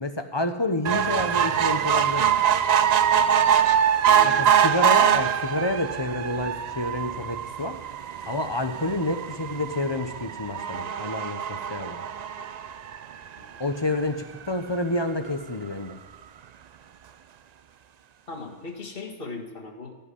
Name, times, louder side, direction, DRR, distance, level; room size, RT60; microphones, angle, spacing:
voice 1, 0.0-2.4 4.2-7.8 8.3-12.0 13.6-16.0, left 2 dB, 25° left, 7 dB, 0.8 m, -29 dB
sound 1, 0.8-13.4 14.0-14.1 14.4-14.5 14.7-14.8, right 8 dB, 85° right, 0.3 m, -23 dB
voice 2, 4.0-4.5 13.4-13.6 18.3-20.0, left 3 dB, 45° left, 1 dB, 1.9 m, -39 dB
15.5 x 5.7 x 10.0 m, 1.2 s
omnidirectional pair, 1.3 m